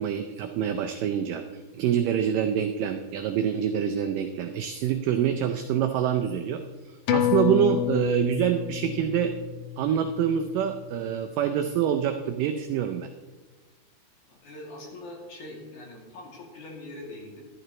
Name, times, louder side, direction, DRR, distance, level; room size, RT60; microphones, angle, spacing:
voice 1, 0.0-1.4 1.7-6.6 6.9-9.3 9.8-13.1, right 9 dB, 80° right, 5 dB, 1.9 m, -26 dB
sound 1, 7.1-12.0 12.4-12.5, left 10 dB, 70° left, 2.1 m, -30 dB
voice 2, 14.3-17.4, left 1 dB, 55° left, -2 dB, 3.8 m, -42 dB
14.5 x 12.0 x 3.1 m, 1.3 s
omnidirectional pair, 4.5 m